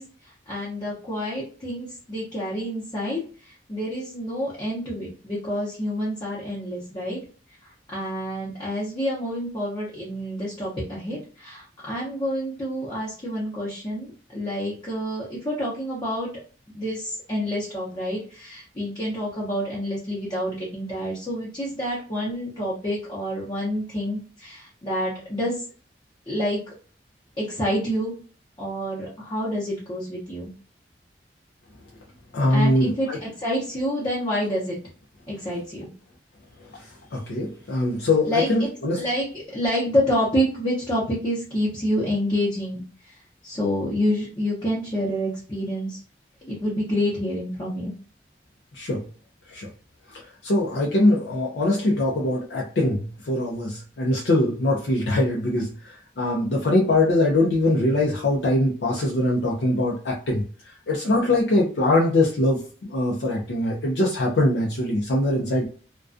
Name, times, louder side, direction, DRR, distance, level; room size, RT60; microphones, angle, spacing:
voice 1, 0.0-7.2 7.6-16.3 16.7-25.6 26.3-26.7 27.4-28.1 28.6-30.5 32.5-34.8 35.3-35.9 38.2-38.7 39.0-46.0 46.4-47.9, equal, 25° left, -6 dB, 0.7 m, -28 dB
voice 2, 32.3-33.2 36.6-39.0 48.7-49.0 49.5-49.7 50.1-65.7, left 1 dB, 70° left, -2 dB, 0.5 m, -23 dB
2.3 x 2.2 x 2.4 m, 0.40 s
head